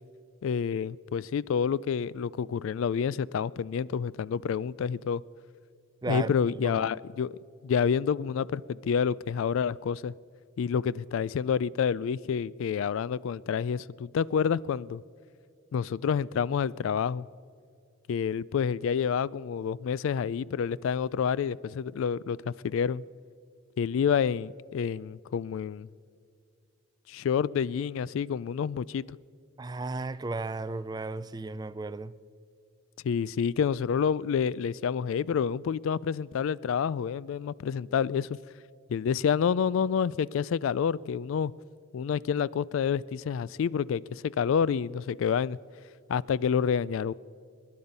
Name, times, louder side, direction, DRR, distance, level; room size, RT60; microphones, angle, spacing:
voice 1, 0.4-5.2 6.1-7.4 7.6-10.1 10.6-15.0 15.7-17.3 18.1-23.0 23.8-25.9 27.1-29.0 33.0-38.3 38.9-41.5 41.9-45.6 46.1-47.1, left 7 dB, 70° left, 0.3 m, -28 dB
voice 2, 29.6-32.1, right 3 dB, 20° right, 0.3 m, -34 dB
24.0 x 10.5 x 5.4 m
head